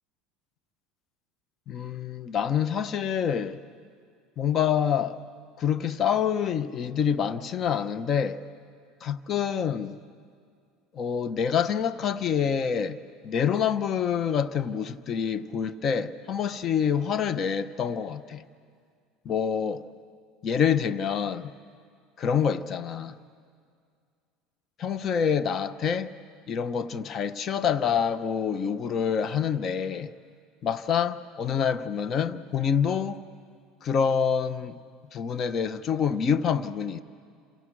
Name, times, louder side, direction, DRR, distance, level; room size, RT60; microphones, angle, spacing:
voice 1, 1.7-3.6 4.4-5.2 5.6-8.4 9.0-10.0 10.9-13.0 13.2-18.4 19.2-19.8 20.4-21.5 22.2-23.2 24.8-26.1 26.5-30.1 30.6-33.2 33.8-34.8 35.1-37.0, left 7 dB, 45° left, 1.0 m, -26 dB
29.0 x 27.5 x 6.3 m
supercardioid pair, 95°, 0 cm